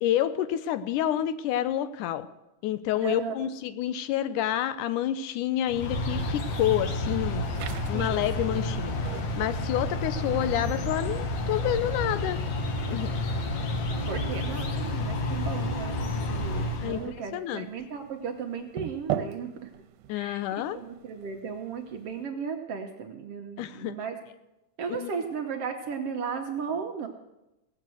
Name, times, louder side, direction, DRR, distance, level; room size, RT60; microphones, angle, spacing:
voice 1, 0.0-2.3 2.6-7.5 7.9-8.9 9.4-12.4 12.9-13.1 16.8-17.7 20.1-20.8 23.6-24.0 24.9-25.2, left 12 dB, 85° left, 12 dB, 2.2 m, -28 dB
voice 2, 3.0-3.3 7.9-8.6 14.1-19.7 20.1-20.4 20.7-24.2 24.8-27.1, right 6 dB, 65° right, 4 dB, 1.6 m, -35 dB
sound 1, 5.7-17.1, left 1 dB, 65° left, 2.6 m, -30 dB
sound 2, 7.5-22.3, right 10 dB, 85° right, 2.2 m, -43 dB
17.5 x 7.5 x 7.7 m, 0.94 s
omnidirectional pair, 3.6 m